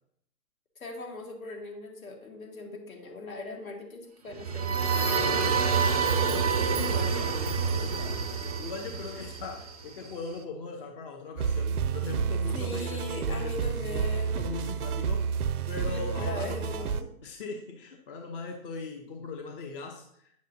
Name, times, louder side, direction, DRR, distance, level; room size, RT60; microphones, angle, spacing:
voice 1, 0.8-5.2 12.6-14.6 15.8-17.1, left 2 dB, 70° left, 1 dB, 2.1 m, -40 dB
sound 1, 4.3-10.1, right 5 dB, 25° right, 0.4 m, -27 dB
voice 2, 5.9-16.9 17.2-20.5, left 4 dB, 40° left, 2 dB, 0.9 m, -40 dB
sound 2, 11.4-17.0, right 6 dB, 85° right, 0.6 m, -30 dB
9.4 x 6.5 x 2.7 m, 0.70 s
hypercardioid pair, 140°, 44 cm